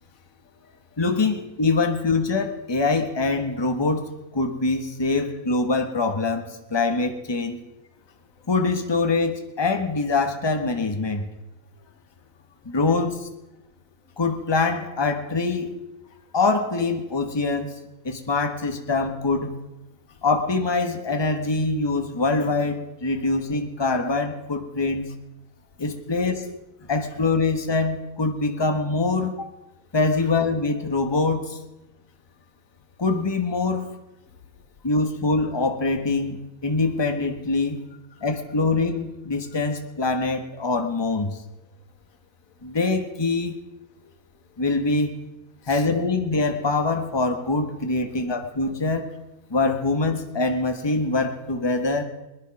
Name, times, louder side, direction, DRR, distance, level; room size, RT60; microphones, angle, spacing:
voice 1, 0.0-1.0 5.1-5.3 8.0-8.5 11.7-12.8 13.6-13.7 14.1-14.2 16.1-16.3 20.1-20.2 25.7-26.2 26.8-26.9 34.3-34.7 38.1-38.3 44.0-44.1 44.5-44.6 45.6-45.9, left 7 dB, 70° left, 10 dB, 1.4 m, -53 dB
voice 2, 1.0-4.0 4.3-7.6 8.5-11.3 12.6-13.3 14.2-15.8 16.3-17.7 18.0-19.6 20.2-25.1 25.8-26.5 26.9-29.5 29.9-31.6 33.0-33.9 34.8-37.8 38.2-41.4 42.6-43.6 44.6-45.2 45.7-49.1 49.5-52.0, left 3 dB, 20° left, 5 dB, 1.3 m, -24 dB
21.0 x 10.5 x 5.9 m, 0.99 s
omnidirectional pair, 1.5 m